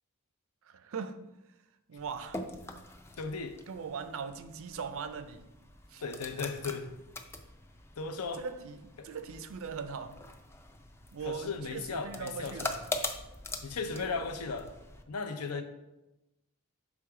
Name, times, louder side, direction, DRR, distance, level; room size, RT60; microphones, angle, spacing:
voice 1, 0.7-1.3 1.9-2.4 3.7-5.5 5.9-6.0 8.4-10.2 11.1-12.8 13.9-14.3 15.5-15.6, right 5 dB, 65° right, 0.4 m, -40 dB
sound 1, 2.0-15.0, left 2 dB, 10° left, 0.3 m, -43 dB
voice 2, 3.2-3.6 6.0-6.9 8.0-8.4 9.0-9.1 11.2-12.8 13.6-14.7 15.1-15.6, left 4 dB, 80° left, 0.6 m, -36 dB
6.2 x 3.5 x 4.7 m
head